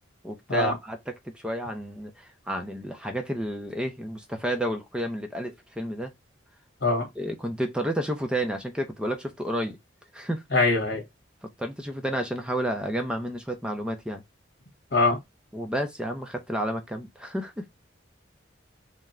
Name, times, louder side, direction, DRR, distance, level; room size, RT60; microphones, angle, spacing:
voice 1, 0.2-6.1 7.2-9.8 10.1-10.4 11.4-14.2 15.5-17.7, equal, 5° right, 0.5 m, -31 dB
voice 2, 10.5-11.0 14.9-15.2, left 3 dB, 55° left, 1.7 m, -22 dB
3.7 x 2.2 x 4.2 m
head